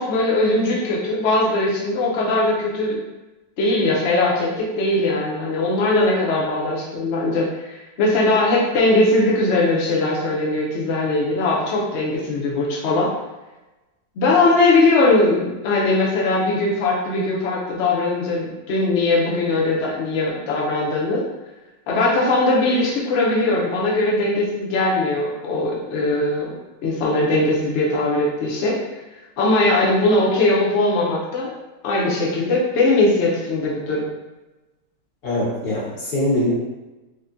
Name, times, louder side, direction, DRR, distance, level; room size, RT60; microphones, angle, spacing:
voice 1, 0.0-3.0 3.6-13.1 14.2-21.2 21.9-28.8 29.4-31.5 31.8-34.1, left 2 dB, 70° left, -3 dB, 0.6 m, -20 dB
voice 2, 35.2-36.5, left 1 dB, 55° left, -10 dB, 1.8 m, -22 dB
3.4 x 2.1 x 2.5 m, 1.1 s
omnidirectional pair, 1.8 m